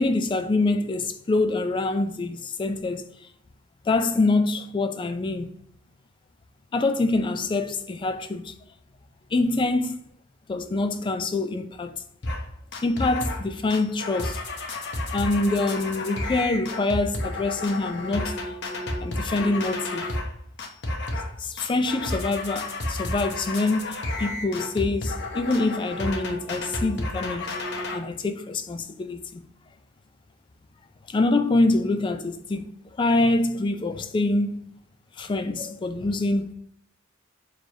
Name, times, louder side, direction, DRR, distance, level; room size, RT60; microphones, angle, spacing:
voice 1, 0.0-3.1 3.8-5.5 6.7-8.5 9.3-10.0 10.5-12.0 12.8-14.4 15.1-18.5 19.0-20.0 21.4-29.4 31.1-32.7 33.0-34.6 35.2-36.5, left 2 dB, 25° left, 0.3 m, -25 dB
sound 1, 12.2-12.4 12.7-13.4 13.7-20.3 20.6-21.3 21.6-28.0, left 2 dB, 55° left, 0.8 m, -31 dB
4.6 x 3.1 x 2.6 m
head